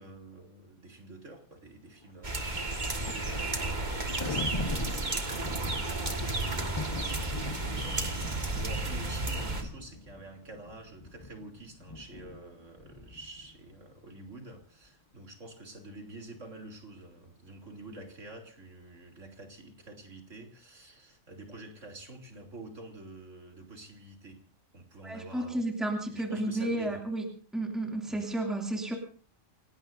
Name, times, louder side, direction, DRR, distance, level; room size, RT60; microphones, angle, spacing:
voice 1, 0.0-6.7 7.6-24.4 24.7-25.6 26.1-27.0 28.1-28.3, right 2 dB, 85° right, 3 dB, 3.5 m, -48 dB
Thunder, 2.0-13.8, left 3 dB, 25° left, 1.0 m, -42 dB
sound 1, 2.2-9.6, right 2 dB, 35° right, 1.9 m, -32 dB
voice 2, 25.0-27.2 27.5-28.9, right 1 dB, ahead, 1 dB, 2.5 m, -32 dB
28.5 x 17.5 x 2.6 m, 0.40 s
omnidirectional pair, 1.3 m